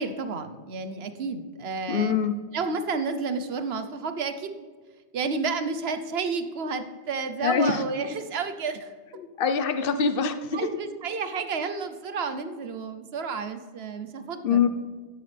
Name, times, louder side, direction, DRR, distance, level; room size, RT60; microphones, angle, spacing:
voice 1, 0.0-2.2 2.5-4.7 5.1-8.9 10.5-14.7, right 4 dB, 65° right, 9 dB, 1.0 m, -31 dB
voice 2, 1.9-2.3 7.4-7.8 9.2-10.7 14.4-14.7, left 6 dB, 55° left, 10 dB, 0.9 m, -24 dB
13.0 x 9.9 x 3.4 m, 1.5 s
omnidirectional pair, 1.2 m